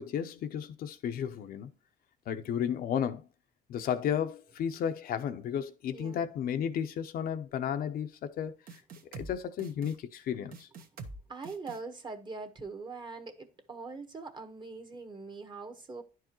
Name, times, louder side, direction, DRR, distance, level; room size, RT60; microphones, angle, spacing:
voice 1, 0.0-1.7 2.3-3.2 3.7-8.5 9.1-10.7, left 8 dB, 60° left, 0.7 m, -33 dB
voice 2, 5.9-6.2 11.3-16.0, right 4 dB, 25° right, 1.2 m, -42 dB
sound 1, 8.7-9.3 9.6-9.9 10.5-11.2 11.4-11.8, right 3 dB, 60° right, 1.1 m, -45 dB
10.5 x 4.7 x 3.0 m
cardioid pair, 110°, 17 cm